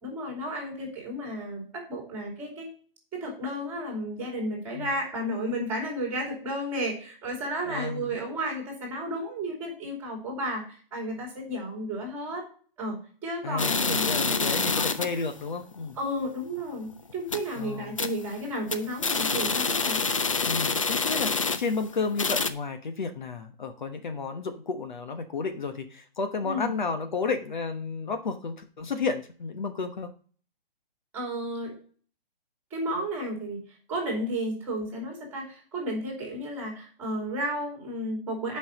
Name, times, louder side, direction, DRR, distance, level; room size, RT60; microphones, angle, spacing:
voice 1, 0.0-2.7 3.1-12.5 12.8-13.0 13.2-15.1 16.0-20.0 26.4-26.7 31.1-31.7 32.7-38.6, equal, 5° right, -1 dB, 2.9 m, -33 dB
voice 2, 7.7-8.2 13.4-16.0 17.6-18.0 20.4-30.1, left 4 dB, 50° left, 7 dB, 1.1 m, -32 dB
sound 1, 13.6-15.2 15.6-15.7 16.0-16.1 16.6-16.8 17.1-17.6 18.0-18.3 18.6-21.8 22.1-22.5, left 4 dB, 35° left, 0.5 m, -27 dB
9.5 x 5.6 x 5.1 m, 0.43 s
hypercardioid pair, 180°, 30 cm